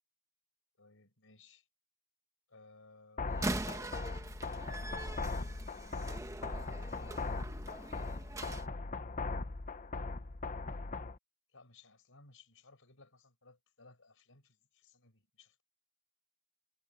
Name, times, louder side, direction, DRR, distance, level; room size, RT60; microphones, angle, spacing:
voice 1, 0.8-1.7 2.5-3.5 6.9-7.7 11.5-15.6, left 3 dB, 65° left, 6.1 m, -61 dB
sound 1, 3.2-11.2, left 3 dB, 35° left, 0.8 m, -40 dB
Slam, 3.3-8.7, right 1 dB, 15° right, 1.5 m, -42 dB
head